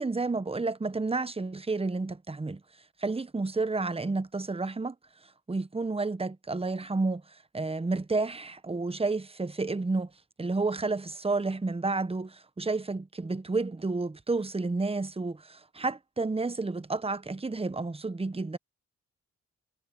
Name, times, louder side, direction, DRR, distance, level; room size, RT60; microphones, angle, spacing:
voice 1, 0.0-2.6 3.0-5.0 5.5-10.1 10.4-18.6, right 3 dB, 20° right, 1.1 m, -31 dB
supercardioid pair, 45°, 30 cm